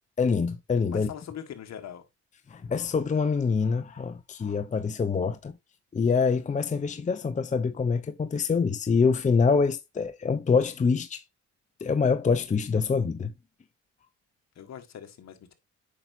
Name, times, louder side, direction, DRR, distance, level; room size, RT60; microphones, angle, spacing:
voice 1, 0.2-1.1 2.5-5.5 5.9-11.2 11.8-13.3, left 5 dB, 25° left, 0.6 m, -25 dB
voice 2, 0.9-2.0 14.6-15.5, left 9 dB, 60° left, 1.6 m, -41 dB
8.5 x 5.8 x 2.6 m
cardioid pair, 90°, 30 cm